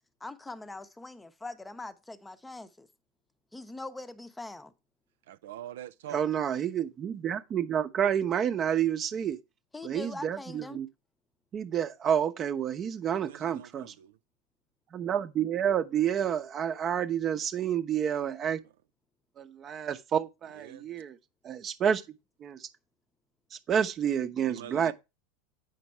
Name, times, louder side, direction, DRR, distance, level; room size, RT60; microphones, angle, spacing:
voice 1, 0.2-2.9 3.5-4.7 9.7-10.8 24.4-24.5, left 2 dB, 10° left, 0.8 m, -42 dB
voice 2, 5.3-6.2 13.2-14.2 20.5-20.9 24.5-24.9, right 11 dB, 70° right, 0.4 m, -44 dB
voice 3, 6.1-9.4 9.8-10.9 11.5-13.9 14.9-18.6 19.4-21.2 21.4-22.0 22.4-22.7 23.5-24.9, right 9 dB, 35° right, 0.9 m, -29 dB
8.1 x 5.1 x 4.4 m
hypercardioid pair, 90°, 0 cm